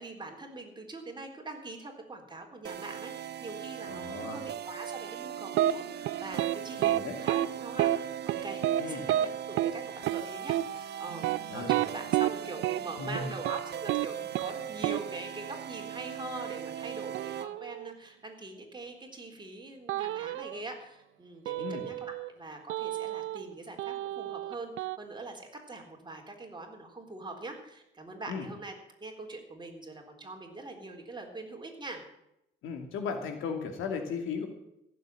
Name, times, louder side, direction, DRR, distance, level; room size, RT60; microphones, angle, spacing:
voice 1, 0.0-7.9 8.2-32.0, right 2 dB, 20° right, 2 dB, 3.8 m, -43 dB
sound 1, 2.6-17.5, right 10 dB, 60° right, 0.9 m, -40 dB
voice 2, 3.9-4.4 6.8-7.2 8.8-9.0 11.5-11.8 13.0-13.3 21.6-21.8 28.3-28.5 32.6-34.5, left 5 dB, 90° left, 6 dB, 2.5 m, -36 dB
sound 2, 5.5-5.7 6.0-6.5 6.8-7.0 7.3-7.5 7.8-8.0 8.3-8.8 9.1-9.3 9.6-9.7 10.1-10.2 10.5-10.6 11.1-12.3 12.6-12.8 13.1-13.6 13.9-14.1 14.3-14.5 14.8-15.0 17.1-17.9 19.9-20.6 21.5-22.3 22.7-23.5 23.8-25.0, right 14 dB, 80° right, 0.5 m, -29 dB
15.5 x 7.7 x 9.1 m, 0.82 s
cardioid pair, 90°, 20 cm